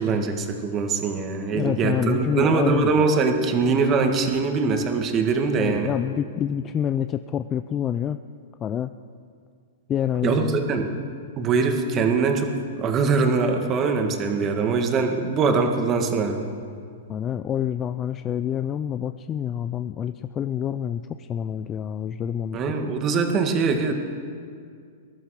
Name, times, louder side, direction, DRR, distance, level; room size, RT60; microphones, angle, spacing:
voice 1, 0.0-5.9 10.2-10.9 11.4-16.5 22.5-23.9, right 4 dB, 30° right, 4 dB, 1.9 m, -22 dB
voice 2, 1.5-3.0 5.6-8.2 8.6-8.9 9.9-10.6 17.1-22.6, left 9 dB, 25° left, 11 dB, 0.4 m, -27 dB
20.5 x 12.0 x 5.0 m, 2.2 s
hypercardioid pair, 135°, 0 cm